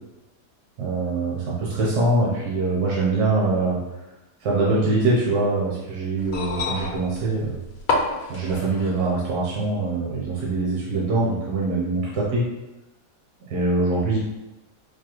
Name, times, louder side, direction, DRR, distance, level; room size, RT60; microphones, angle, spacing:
voice 1, 0.8-3.8 4.4-7.6 8.3-12.4 13.5-14.2, right 2 dB, 70° right, -6 dB, 1.2 m, -23 dB
sound 1, 6.2-9.2 10.2-10.3, left 3 dB, 70° left, 0.9 m, -28 dB
4.8 x 2.2 x 2.9 m, 1.0 s
omnidirectional pair, 1.8 m